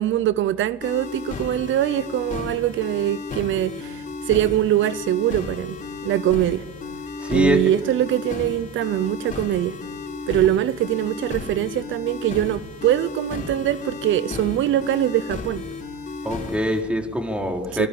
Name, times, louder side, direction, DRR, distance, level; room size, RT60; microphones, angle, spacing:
voice 1, 0.0-6.6 7.3-9.8 10.3-15.6 17.7-17.9, right 12 dB, 75° right, 17 dB, 0.7 m, -23 dB
sound 1, 0.8-16.8, left 4 dB, 40° left, 4.5 m, -33 dB
voice 2, 7.2-7.6 16.2-17.9, equal, 5° right, 3 dB, 3.9 m, -23 dB
24.5 x 20.5 x 7.0 m, 1.1 s
cardioid pair, 90°, 20 cm